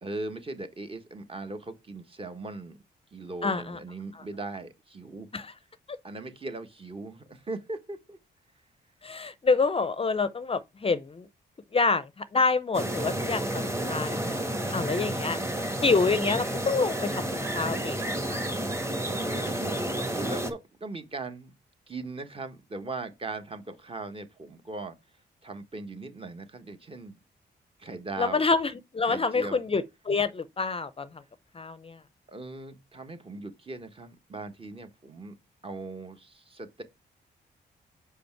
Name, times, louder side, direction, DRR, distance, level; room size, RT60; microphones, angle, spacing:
voice 1, 0.0-2.8 3.1-5.3 6.0-8.2 14.6-15.6 19.0-21.5 21.9-25.0 25.4-27.2 27.8-28.4 29.0-29.6 32.3-35.3 35.6-36.8, right 2 dB, 30° right, 1.2 m, -39 dB
voice 2, 3.4-3.8 4.2-4.3 5.3-5.5 5.9-6.0 9.0-11.3 11.7-14.3 14.7-15.4 15.8-17.2 17.5-18.0 18.3-18.5 28.2-31.1 31.6-32.0, left 4 dB, 30° left, 0.5 m, -27 dB
sound 1, 12.7-20.5, right 1 dB, 15° right, 1.4 m, -31 dB
5.2 x 4.9 x 4.5 m
cardioid pair, 75°, 19 cm